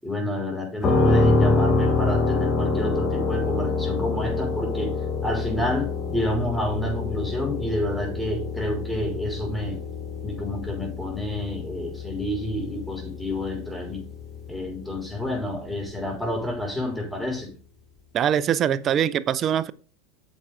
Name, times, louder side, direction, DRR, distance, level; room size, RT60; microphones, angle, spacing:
voice 1, 0.0-4.9 5.2-9.8 10.2-14.0 14.5-17.5, left 1 dB, ahead, 5.1 m, -29 dB
sound 1, 0.8-14.6, left 3 dB, 30° left, 4.1 m, -26 dB
voice 2, 18.1-19.7, right 9 dB, 40° right, 0.6 m, -23 dB
9.2 x 7.3 x 3.6 m
hypercardioid pair, 90°, 0 cm